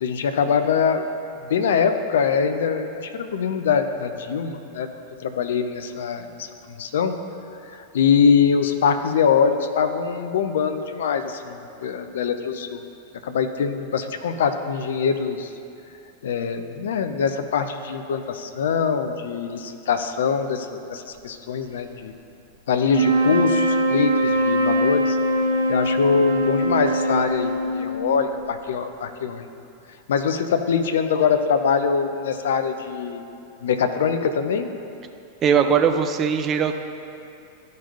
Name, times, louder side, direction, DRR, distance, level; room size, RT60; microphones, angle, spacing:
voice 1, 0.0-1.1 1.4-4.9 5.2-7.1 7.7-12.8 13.2-15.5 16.2-22.1 22.7-25.2 25.7-29.5 30.1-33.2 33.6-34.7, left 6 dB, 60° left, 8 dB, 0.5 m, -23 dB
sound 1, 22.8-28.3, equal, 75° right, 1.2 m, -22 dB
voice 2, 35.4-36.8, right 7 dB, 30° right, 6 dB, 0.5 m, -20 dB
13.0 x 5.3 x 2.7 m, 2.6 s
figure-of-eight pair, 90°, 0 cm